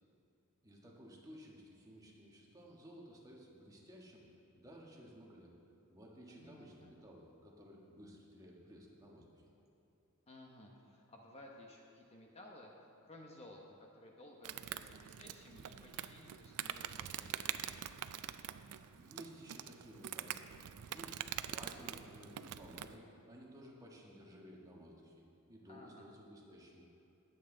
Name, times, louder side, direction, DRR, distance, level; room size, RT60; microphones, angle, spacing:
voice 1, 0.6-4.2 4.5-5.5 5.9-9.4 19.0-20.5 20.9-26.9, equal, 15° right, -2 dB, 1.5 m, -55 dB
voice 2, 6.3-6.9 10.3-12.7 13.0-17.6 25.7-26.1, left 1 dB, 30° left, 0 dB, 1.0 m, -57 dB
Insect, 14.4-23.0, right 10 dB, 80° right, 0.4 m, -45 dB
19.5 x 8.1 x 3.9 m, 2.8 s
head